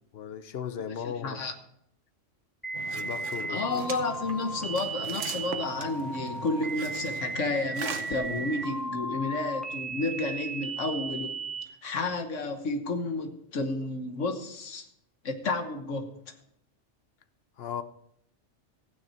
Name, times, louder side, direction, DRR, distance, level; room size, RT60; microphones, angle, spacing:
voice 1, 0.1-1.4 2.9-3.9 17.6-17.8, left 8 dB, 60° left, 12 dB, 0.9 m, -37 dB
voice 2, 0.9-1.5 3.5-11.4 11.8-14.9 15.2-16.1, left 3 dB, 90° left, 6 dB, 1.6 m, -31 dB
sound 1, 2.6-11.6, right 3 dB, ahead, 1.1 m, -36 dB
sound 2, 2.7-8.9, right 7 dB, 80° right, 1.2 m, -41 dB
15.0 x 9.3 x 4.4 m, 0.74 s
omnidirectional pair, 1.2 m